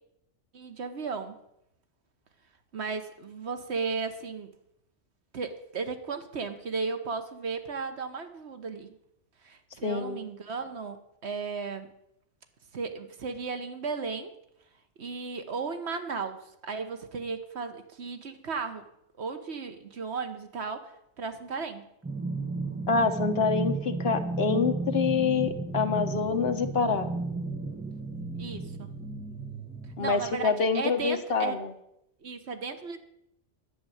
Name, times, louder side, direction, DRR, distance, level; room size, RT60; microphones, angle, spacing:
voice 1, 0.5-1.3 2.7-4.5 5.3-8.9 9.4-11.9 12.7-14.3 15.0-18.8 19.2-20.9 21.2-21.8 28.4-28.9 30.0-31.6 32.2-33.0, right 4 dB, 70° right, 7 dB, 1.4 m, -35 dB
voice 2, 9.8-10.2 22.9-27.1 30.0-31.7, left 5 dB, 60° left, 8 dB, 1.2 m, -26 dB
sound 1, 22.0-30.4, right 2 dB, 10° right, 1.0 m, -33 dB
11.0 x 6.9 x 9.1 m, 0.81 s
omnidirectional pair, 1.2 m